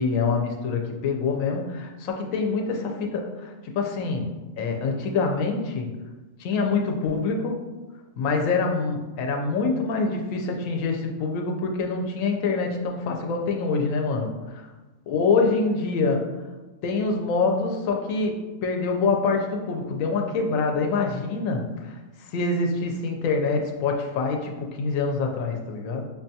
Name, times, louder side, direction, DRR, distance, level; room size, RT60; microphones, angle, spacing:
voice 1, 0.0-5.9 6.4-7.6 8.2-14.3 15.1-16.3 16.8-26.1, left 4 dB, 80° left, 2 dB, 1.0 m, -25 dB
5.3 x 2.3 x 2.7 m, 1.2 s
omnidirectional pair, 1.4 m